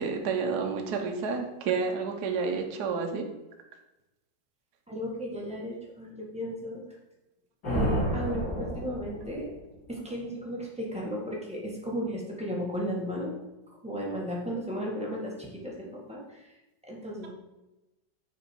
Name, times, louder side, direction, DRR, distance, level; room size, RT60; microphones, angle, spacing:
voice 1, 0.0-3.3, right 5 dB, 65° right, 3 dB, 1.4 m, -30 dB
voice 2, 4.9-6.8 7.6-9.5 9.9-13.3 13.8-16.5 16.9-17.3, equal, 5° right, -4 dB, 1.6 m, -35 dB
sound 1, 7.6-9.6, equal, 70° left, 2.7 m, -30 dB
6.5 x 5.4 x 4.6 m, 0.98 s
omnidirectional pair, 2.0 m